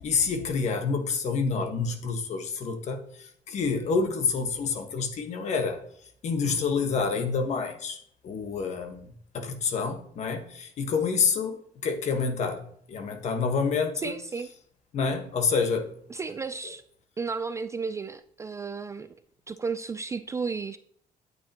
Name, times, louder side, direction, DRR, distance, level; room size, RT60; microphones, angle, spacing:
voice 1, 0.0-5.8 6.2-9.1 9.3-11.6 11.8-14.1 14.9-15.9, left 5 dB, 50° left, 6 dB, 1.4 m, -28 dB
voice 2, 14.0-14.5 16.1-16.8 17.2-19.1 19.5-20.8, right 4 dB, 20° right, 11 dB, 0.3 m, -33 dB
9.4 x 8.6 x 2.9 m, 0.63 s
cardioid pair, 170°, 15 cm